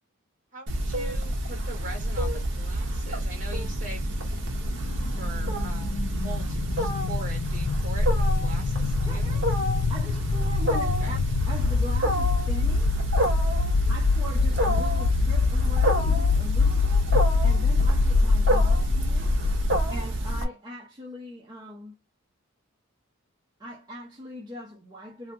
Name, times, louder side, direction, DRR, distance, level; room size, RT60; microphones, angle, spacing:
voice 1, 0.5-4.1 5.1-9.4 11.0-11.1 13.8-14.0, right 2 dB, 35° right, 1.4 m, -42 dB
Wild animals, 0.7-20.4, right 1 dB, 55° right, 0.7 m, -27 dB
sound 1, 3.9-19.8, left 5 dB, 65° left, 0.3 m, -26 dB
voice 2, 9.1-9.4 9.9-12.9 13.9-17.1 17.4-19.4 19.9-21.9 23.6-25.3, equal, 20° right, 0.6 m, -40 dB
3.3 x 2.3 x 2.6 m
head